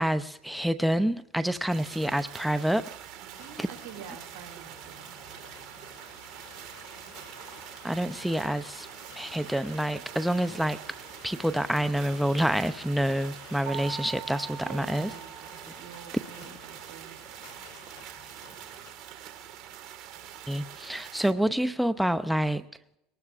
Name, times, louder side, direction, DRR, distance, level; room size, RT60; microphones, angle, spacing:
voice 1, 0.0-2.9 3.6-3.7 7.8-8.9 9.2-10.8 11.2-15.1 16.4-16.5 20.5-22.6, right 1 dB, ahead, 11 dB, 0.5 m, -27 dB
sound 1, 1.7-21.3, right 10 dB, 55° right, 1.7 m, -45 dB
voice 2, 3.2-5.2 14.6-17.2, right 8 dB, 75° right, 3 dB, 2.4 m, -47 dB
sound 2, 3.3-18.9, left 8 dB, 75° left, 2.7 m, -53 dB
sound 3, 13.7-16.4, right 11 dB, 40° right, 7.5 m, -42 dB
22.0 x 19.0 x 2.4 m, 0.85 s
supercardioid pair, 105°, 0 cm